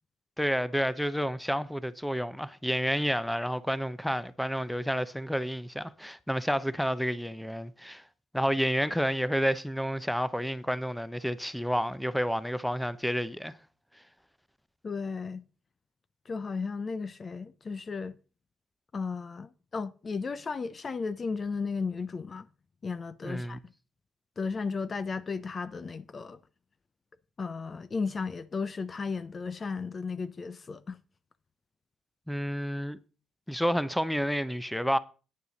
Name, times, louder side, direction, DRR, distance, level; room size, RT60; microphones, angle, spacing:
voice 1, 0.4-8.0 8.3-13.5 23.2-23.6 32.3-33.0 33.5-35.0, equal, ahead, 0.7 m, -30 dB
voice 2, 14.8-15.4 16.3-18.1 18.9-22.5 22.8-23.6 24.4-26.4 27.4-31.0, left 4 dB, 35° left, 0.6 m, -34 dB
9.5 x 6.8 x 6.3 m
cardioid pair, 90°, 0 cm